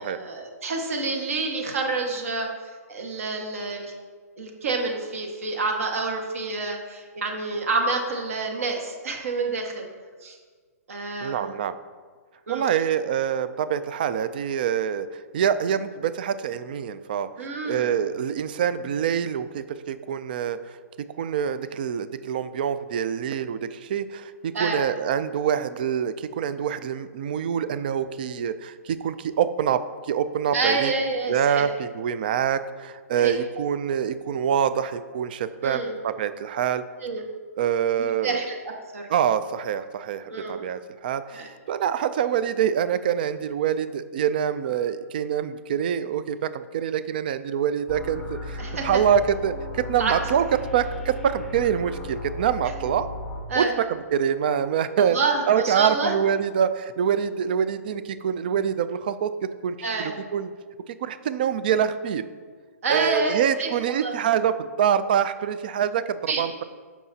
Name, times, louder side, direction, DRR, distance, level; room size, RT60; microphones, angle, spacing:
voice 1, 0.0-2.5 2.9-3.9 4.4-9.9 10.2-10.4 10.9-11.5 12.5-12.7 17.4-17.9 24.5-24.8 30.5-31.7 33.2-33.3 35.6-35.9 37.0-37.3 38.0-38.5 38.9-39.1 40.3-40.6 41.3-41.5 48.6-49.0 50.0-50.1 53.5-53.7 55.0-56.1 59.8-60.1 62.8-64.1 66.3-66.4, right 3 dB, 60° right, 2 dB, 1.5 m, -28 dB
voice 2, 11.2-11.7 12.5-17.3 17.6-20.8 21.2-30.9 31.3-36.8 37.6-38.4 39.1-50.4 50.7-53.1 53.6-55.2 55.5-59.3 59.6-60.5 60.9-62.2 62.9-66.6, right 8 dB, 35° right, 13 dB, 0.3 m, -25 dB
sound 1, 47.9-53.4, left 2 dB, ahead, 0.7 m, -35 dB
14.5 x 5.7 x 2.8 m, 1.5 s
hypercardioid pair, 170°, 9 cm